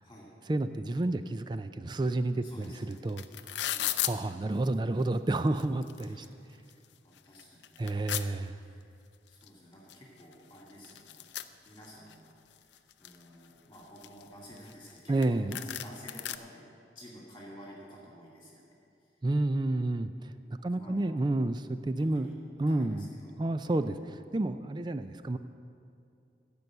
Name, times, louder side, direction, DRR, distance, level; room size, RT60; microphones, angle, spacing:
voice 1, 0.5-2.4 2.9-3.6 4.0-6.3 7.8-8.5 15.1-15.6 19.2-20.3 20.6-22.3 22.6-23.1 23.4-24.0 24.3-25.4, right 2 dB, 25° right, 11 dB, 0.3 m, -30 dB
voice 2, 2.4-3.0 3.7-3.9 6.0-6.3 7.0-8.1 8.5-8.8 9.3-16.7 16.9-19.1 20.6-21.2 22.0-22.3 22.7-23.3 23.6-23.8, equal, 15° left, -4 dB, 2.2 m, -52 dB
sound 1, 2.6-2.7 2.9-4.1 5.0-5.1 5.5-6.3 6.7-6.8 7.2-8.2 9.4-9.5 9.9-10.0 10.2-12.1 12.6-13.2 13.7-15.0 15.2-15.3 15.5-16.4, left 13 dB, 85° left, 0.5 m, -35 dB
15.5 x 5.5 x 7.9 m, 2.5 s
head